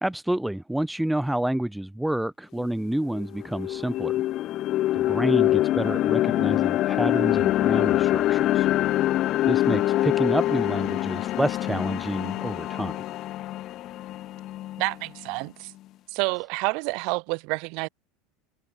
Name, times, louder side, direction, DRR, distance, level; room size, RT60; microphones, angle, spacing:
voice 1, 0.0-4.2 4.9-8.7 9.5-13.0, right 1 dB, 5° right, 2.4 m, -28 dB
sound 1, 2.6-2.7 3.1-15.2, left 14 dB, 50° left, 0.5 m, -25 dB
voice 2, 14.8-15.7 16.1-17.9, right 31 dB, 65° right, 0.5 m, -28 dB
supercardioid pair, 115°, 0 cm